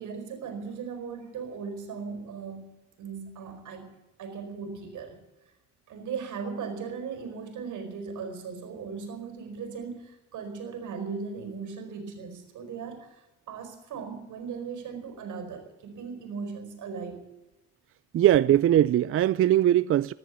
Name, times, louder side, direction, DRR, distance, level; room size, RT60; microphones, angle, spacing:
voice 1, 0.0-2.7 3.0-3.9 4.2-5.2 5.9-17.2, right 5 dB, 80° right, 4.5 m, -38 dB
voice 2, 18.1-20.1, right 12 dB, 45° right, 0.4 m, -21 dB
14.5 x 11.5 x 8.4 m
cardioid pair, 90°, 30 cm